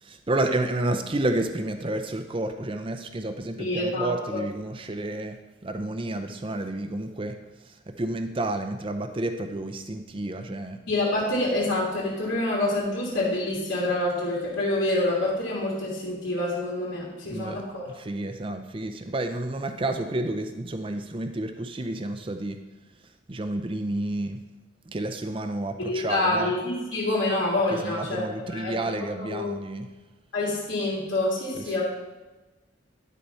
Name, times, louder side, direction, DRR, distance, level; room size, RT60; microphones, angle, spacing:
voice 1, 0.0-5.4 5.6-7.4 7.7-10.8 17.3-22.6 23.3-24.4 24.9-26.5 27.7-29.9 31.5-31.6, right 2 dB, 25° right, 7 dB, 0.5 m, -30 dB
voice 2, 3.6-4.4 10.9-17.9 25.8-28.2 28.5-29.5 30.3-31.8, left 2 dB, 75° left, -6 dB, 2.9 m, -27 dB
12.0 x 4.2 x 5.5 m, 1.1 s
head